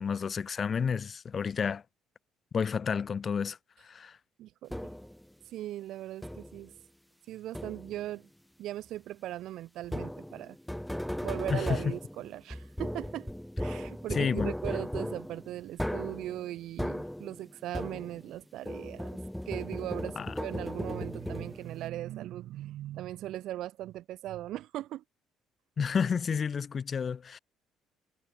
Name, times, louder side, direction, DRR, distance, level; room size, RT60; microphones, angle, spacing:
voice 1, 0.0-1.8 2.5-4.2 11.5-11.9 14.1-14.5 20.1-20.3 25.8-27.4, left 6 dB, 30° left, 1.8 m, -31 dB
voice 2, 4.4-4.7 5.5-6.7 7.3-8.3 8.6-10.6 11.2-13.3 13.6-19.2 19.5-25.0, right 14 dB, 65° right, 1.9 m, -39 dB
sound 1, 4.7-5.2 6.2-6.7 7.5-8.1 9.8-18.4 18.6-21.8, equal, ahead, 0.7 m, -37 dB
cardioid pair, 145°, 0 cm